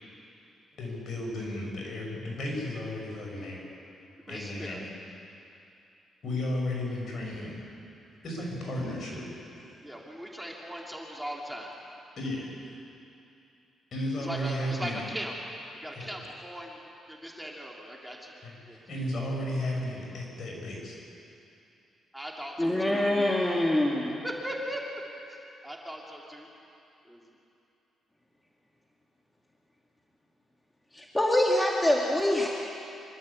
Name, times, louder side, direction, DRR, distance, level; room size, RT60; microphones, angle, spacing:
voice 1, 0.8-3.6 4.3-4.9 6.2-7.6 8.2-9.2 12.2-12.5 13.9-15.0 15.9-16.1 18.4-21.0, left 1 dB, 60° left, -1 dB, 6.5 m, -34 dB
voice 2, 4.3-4.8 9.8-11.8 14.2-15.3 15.8-18.3 18.7-18.8 22.1-23.0 24.0-24.8 25.2-26.5 27.0-27.3, equal, 5° right, -2 dB, 3.2 m, -39 dB
voice 3, 22.6-24.2 30.9-32.5, left 1 dB, 15° left, -2 dB, 2.4 m, -25 dB
25.0 x 12.5 x 8.5 m, 2.8 s
cardioid pair, 70°, 0 cm